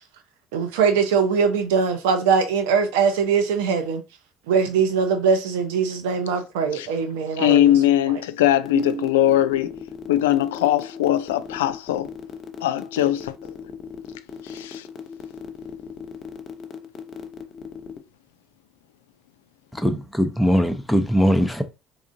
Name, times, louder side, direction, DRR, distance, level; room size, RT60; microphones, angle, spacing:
voice 1, 0.5-4.0 4.5-7.8 8.7-9.0, right 6 dB, 75° right, 0.7 m, -21 dB
voice 2, 7.4-9.8 10.1-12.1 12.6-13.3 14.4-14.9, left 12 dB, 80° left, 0.3 m, -20 dB
sound 1, 8.6-18.0, left 5 dB, 50° left, 0.7 m, -39 dB
voice 3, 19.8-21.6, equal, 5° left, 0.7 m, -20 dB
3.6 x 3.4 x 2.6 m
hypercardioid pair, 60°, 0 cm